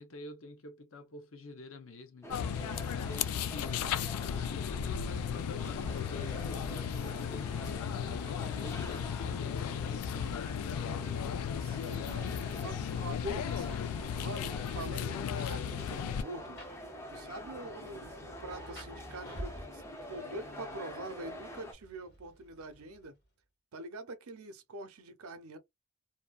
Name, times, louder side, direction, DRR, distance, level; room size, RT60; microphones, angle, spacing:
voice 1, 0.0-11.6, left 2 dB, 65° left, 0.7 m, -49 dB
sound 1, 2.2-21.7, left 1 dB, 10° left, 0.5 m, -46 dB
sound 2, 2.3-16.2, left 8 dB, 85° left, 0.3 m, -35 dB
voice 2, 11.6-13.8 14.2-16.6 17.1-19.8 20.1-23.1 23.7-25.6, right 2 dB, 75° right, 0.6 m, -44 dB
Rain, 14.4-23.2, equal, 45° left, 1.1 m, -51 dB
2.7 x 2.2 x 2.3 m
head